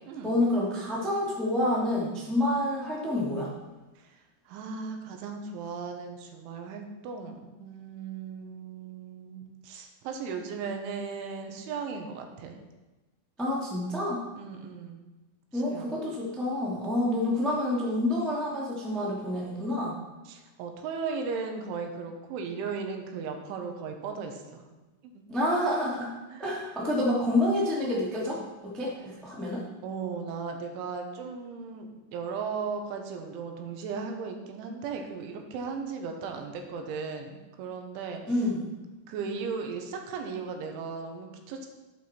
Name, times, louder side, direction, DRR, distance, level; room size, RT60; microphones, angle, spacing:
voice 1, 0.2-3.5 13.4-14.2 15.5-20.0 25.3-26.1 26.4-29.6 38.3-38.7, left 1 dB, ahead, -5 dB, 0.4 m, -28 dB
voice 2, 4.5-12.6 14.4-15.0 15.5-16.0 20.3-24.7 25.0-25.2 26.3-26.4 29.8-38.2 39.1-41.7, right 5 dB, 80° right, 4 dB, 3.6 m, -36 dB
12.0 x 8.4 x 4.5 m, 1.1 s
omnidirectional pair, 5.5 m